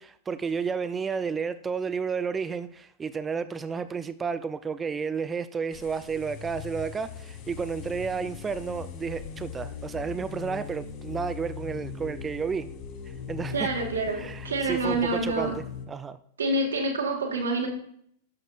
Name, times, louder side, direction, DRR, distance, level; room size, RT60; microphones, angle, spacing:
voice 1, 0.0-12.7 13.3-13.7 14.1-16.2, right 5 dB, 20° right, 13 dB, 0.4 m, -32 dB
sound 1, 5.7-15.9, left 6 dB, 50° left, 1.2 m, -40 dB
voice 2, 13.5-15.5 16.4-17.7, right 2 dB, 85° right, 2 dB, 1.8 m, -27 dB
11.5 x 6.4 x 2.5 m, 0.66 s
hypercardioid pair, 100°, 0 cm